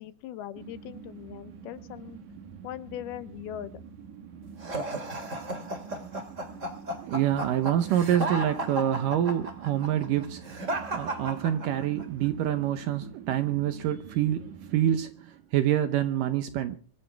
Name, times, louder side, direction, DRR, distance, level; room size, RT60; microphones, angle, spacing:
voice 1, 0.0-2.2 2.6-3.8, left 12 dB, 75° left, 2.7 m, -40 dB
sound 1, 0.5-15.0, right 6 dB, 55° right, 2.9 m, -46 dB
sound 2, 4.6-12.0, right 1 dB, 25° right, 1.9 m, -34 dB
voice 2, 7.0-16.8, right 11 dB, 70° right, 2.2 m, -27 dB
24.0 x 14.0 x 3.4 m
omnidirectional pair, 4.6 m